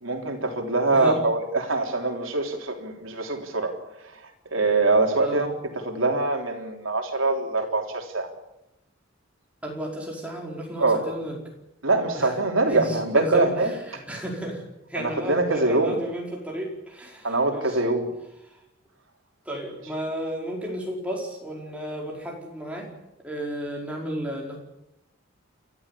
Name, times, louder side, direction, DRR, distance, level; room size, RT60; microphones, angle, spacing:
voice 1, 0.0-3.8 4.0-5.6 5.8-8.3 10.8-11.0 11.8-14.0 15.0-16.0 17.2-18.1, right 2 dB, 75° right, 2 dB, 3.6 m, -24 dB
voice 2, 0.9-1.2 5.2-5.5 9.6-11.4 12.1-12.3 12.7-14.6 14.9-17.8 18.5-18.6 19.4-22.9 23.2-24.6, equal, 5° right, -2 dB, 4.8 m, -33 dB
29.5 x 13.5 x 8.5 m, 0.90 s
head